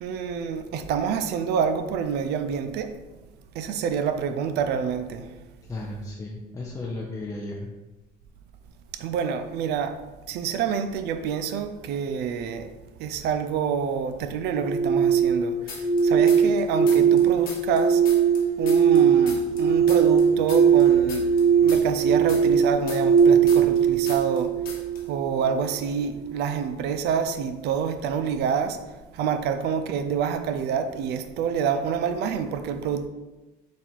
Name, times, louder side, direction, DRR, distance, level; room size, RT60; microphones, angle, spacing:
voice 1, 0.0-3.0 3.6-5.3 8.9-10.0 10.3-12.7 13.0-18.0 18.6-24.5 25.1-28.8 29.1-33.1, right 7 dB, 80° right, 0.4 m, -27 dB
voice 2, 5.7-7.7, left 2 dB, 20° left, 0.5 m, -34 dB
sound 1, 14.5-25.5, right 7 dB, 15° right, 0.8 m, -20 dB
sound 2, 15.7-16.6 16.9-19.6 19.9-23.8 24.1-24.4 24.7-25.0, left 5 dB, 60° left, 1.0 m, -39 dB
4.1 x 2.4 x 4.3 m
cardioid pair, 110°, 17 cm